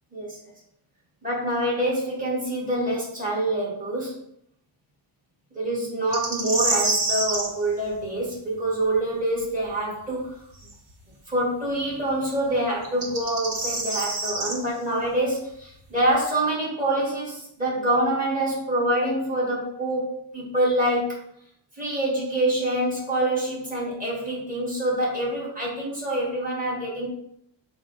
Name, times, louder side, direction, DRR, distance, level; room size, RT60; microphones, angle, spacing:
voice 1, 1.2-4.1 5.5-10.3 11.3-21.2 21.8-27.1, right 1 dB, 20° right, -7 dB, 2.4 m, -26 dB
sound 1, 6.1-7.5 10.6-10.7 12.8-14.6, right 2 dB, 60° right, 1.5 m, -26 dB
7.1 x 2.5 x 5.2 m, 0.73 s
wide cardioid pair, 155°, 45 cm